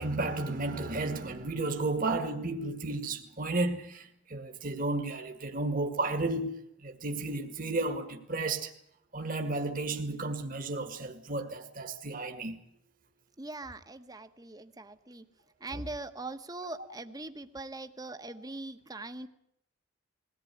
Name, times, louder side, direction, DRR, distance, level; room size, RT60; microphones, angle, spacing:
voice 1, 0.0-8.7 9.1-12.6 15.7-15.8, right 2 dB, 45° right, 2.0 m, -33 dB
voice 2, 13.4-15.3 15.6-19.3, right 2 dB, 20° right, 1.3 m, -41 dB
21.5 x 18.0 x 9.4 m
head